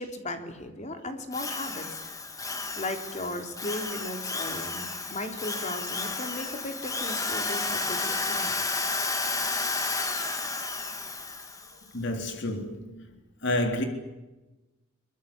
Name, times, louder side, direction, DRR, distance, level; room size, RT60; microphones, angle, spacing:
voice 1, 0.0-2.0 2.8-8.6, left 1 dB, 35° left, 3.7 m, -36 dB
Drill, 1.3-11.7, left 3 dB, 15° left, 2.6 m, -32 dB
voice 2, 11.9-13.1 13.4-13.8, left 1 dB, 60° left, 3.4 m, -29 dB
24.0 x 22.5 x 8.7 m
head